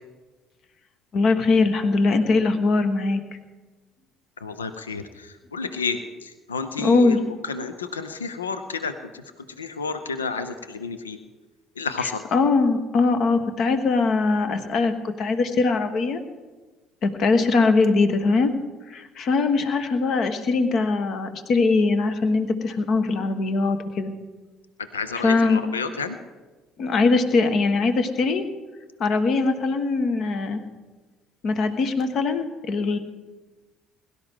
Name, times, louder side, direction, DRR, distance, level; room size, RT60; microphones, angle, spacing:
voice 1, 1.1-3.2 6.8-7.2 12.0-16.2 17.0-18.6 18.9-24.1 25.2-25.6 26.8-28.4 29.0-30.6 31.4-33.0, left 3 dB, 50° left, 9 dB, 1.3 m, -21 dB
voice 2, 4.4-7.2 7.5-8.9 9.6-11.2 11.8-12.2 24.9-26.2, left 5 dB, 80° left, 11 dB, 0.6 m, -30 dB
21.5 x 12.0 x 3.7 m, 1.3 s
figure-of-eight pair, 50°, 0 cm